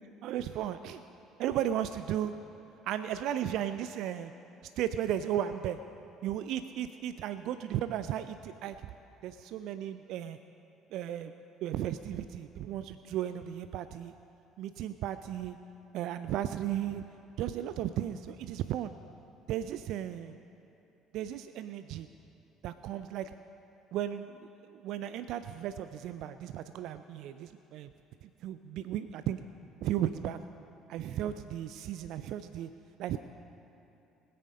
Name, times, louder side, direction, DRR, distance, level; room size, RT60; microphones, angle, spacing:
voice 1, 0.2-1.0 1.4-2.3 2.8-4.3 4.8-5.8 6.2-8.8 9.2-10.4 10.9-11.3 11.6-14.1 14.6-15.6 15.9-17.0 17.4-18.9 19.5-20.4 21.1-22.1 22.6-23.3 23.9-27.9 28.2-29.4 29.8-30.4 30.9-32.7 33.0-33.2, right 11 dB, 60° right, 11 dB, 0.4 m, -35 dB
20.0 x 8.5 x 5.3 m, 2.8 s
figure-of-eight pair, 55°, 0 cm